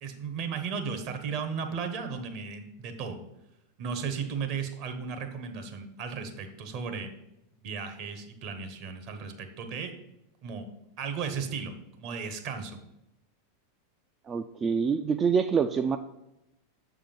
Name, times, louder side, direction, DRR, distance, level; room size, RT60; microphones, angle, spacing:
voice 1, 0.0-3.2 3.8-7.1 7.6-9.9 10.4-10.6 11.0-12.8, right 6 dB, 50° right, 7 dB, 1.0 m, -35 dB
voice 2, 14.3-16.0, right 6 dB, 25° right, 6 dB, 0.3 m, -26 dB
6.9 x 3.7 x 5.3 m, 0.89 s
figure-of-eight pair, 90°, 0 cm